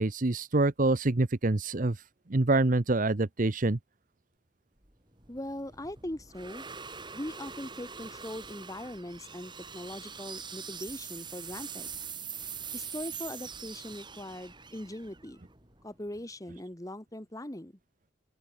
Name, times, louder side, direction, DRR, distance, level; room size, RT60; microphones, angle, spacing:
voice 1, 0.0-2.0 2.3-3.8, right 2 dB, 45° right, 0.9 m, -26 dB
sound 1, 4.8-16.1, right 6 dB, 25° right, 4.5 m, -43 dB
voice 2, 5.3-6.7 7.1-11.9 12.7-15.4 15.8-17.7, left 1 dB, 15° left, 1.4 m, -40 dB
open air
head